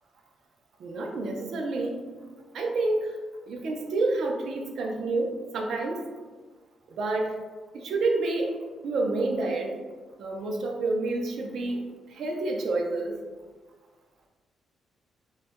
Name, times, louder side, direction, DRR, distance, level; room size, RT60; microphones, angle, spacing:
voice 1, 0.8-2.0 2.5-3.2 3.5-6.0 6.9-7.3 7.7-9.7 10.2-11.8 12.1-13.2, right 2 dB, 65° right, 1 dB, 0.3 m, -28 dB
2.2 x 2.0 x 2.7 m, 1.4 s
cardioid pair, 125°, 0 cm